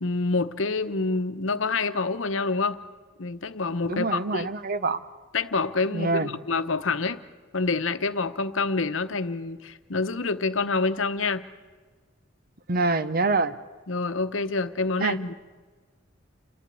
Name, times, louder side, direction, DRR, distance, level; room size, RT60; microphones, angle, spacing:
voice 1, 0.0-2.8 3.2-4.5 5.3-7.2 7.5-11.4 13.9-15.3, left 3 dB, 75° left, 11 dB, 0.9 m, -27 dB
voice 2, 3.9-5.0 5.9-6.3 12.7-13.5 15.0-15.2, right 3 dB, 50° right, 13 dB, 0.9 m, -25 dB
29.0 x 11.5 x 8.5 m, 1.4 s
head